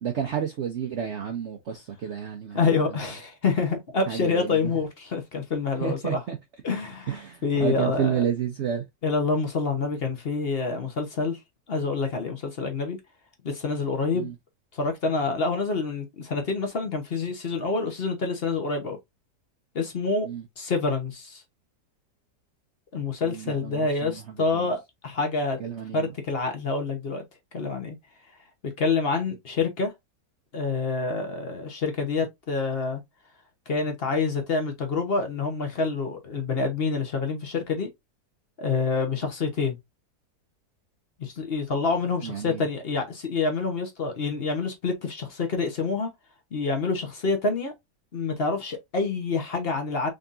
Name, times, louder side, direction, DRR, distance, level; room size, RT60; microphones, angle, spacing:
voice 1, 0.0-2.7 4.1-4.7 5.8-6.4 7.1-8.8 14.1-14.3 20.3-20.4 23.2-24.7 25.6-26.1 42.2-42.6, right 8 dB, 60° right, 0.7 m, -31 dB
voice 2, 2.5-6.2 6.6-8.2 9.0-11.4 11.7-13.0 13.4-14.3 14.8-19.0 19.7-20.3 20.6-21.4 22.9-25.6 25.9-27.2 27.5-28.0 28.6-29.9 30.5-33.0 33.7-37.9 38.6-39.8 41.2-46.1 46.5-47.7 48.1-50.1, left 4 dB, 45° left, 0.9 m, -27 dB
3.8 x 3.5 x 2.5 m
omnidirectional pair, 1.8 m